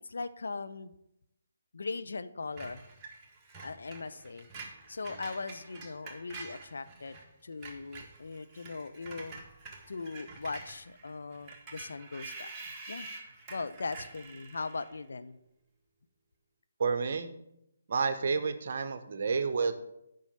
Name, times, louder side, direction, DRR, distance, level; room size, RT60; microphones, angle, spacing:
voice 1, 0.1-0.9 1.7-2.8 3.6-4.5 4.9-7.2 7.4-9.4 9.9-12.5 12.9-13.1 13.5-15.4, left 4 dB, 65° left, 11 dB, 0.5 m, -39 dB
Screech, 2.6-7.2 7.5-15.0, right 3 dB, 15° right, 1.6 m, -47 dB
voice 2, 16.8-17.3 17.9-19.7, right 5 dB, 50° right, 10 dB, 0.8 m, -30 dB
7.2 x 5.5 x 6.7 m, 0.82 s
figure-of-eight pair, 140°, 0 cm